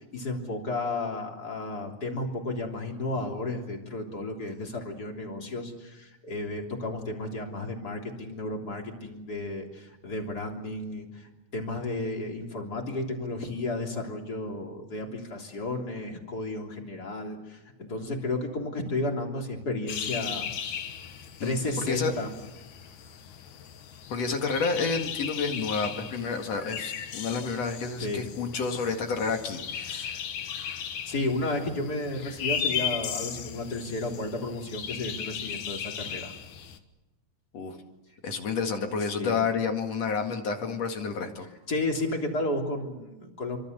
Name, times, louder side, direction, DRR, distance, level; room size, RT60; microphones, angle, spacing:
voice 1, 0.0-20.5 21.4-22.3 28.0-28.2 29.9-30.1 31.1-36.3 39.1-39.4 41.7-43.6, left 2 dB, 30° left, 1 dB, 3.8 m, -33 dB
sound 1, 19.9-36.8, left 8 dB, 75° left, 2.8 m, -36 dB
voice 2, 24.1-30.2 37.5-37.8 38.2-41.5, left 5 dB, 60° left, 4 dB, 3.1 m, -30 dB
27.5 x 25.0 x 6.8 m, 1.0 s
omnidirectional pair, 3.5 m